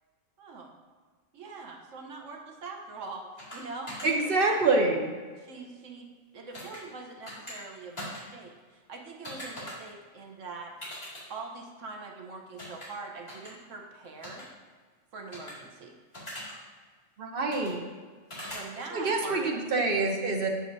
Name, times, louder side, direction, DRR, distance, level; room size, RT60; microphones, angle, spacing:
voice 1, 0.4-0.7 1.3-4.6 5.4-6.1 6.3-10.7 11.3-14.5 15.1-15.9 18.4-19.5, right 3 dB, 75° right, 1 dB, 1.2 m, -43 dB
sound 1, 3.4-3.6 3.9-4.1 6.5-6.8 7.2-7.6 8.0-8.2 9.2-9.7 10.8-11.2 12.6-12.9 13.3-13.5 14.2-14.4 15.3-15.5 16.1-16.5 17.5-17.7 18.3-18.6, left 1 dB, 30° left, 2.5 m, -40 dB
voice 2, 4.0-5.1 17.2-17.8 18.9-20.5, right 3 dB, 50° right, 1 dB, 1.0 m, -26 dB
9.1 x 6.3 x 2.7 m, 1.5 s
omnidirectional pair, 1.3 m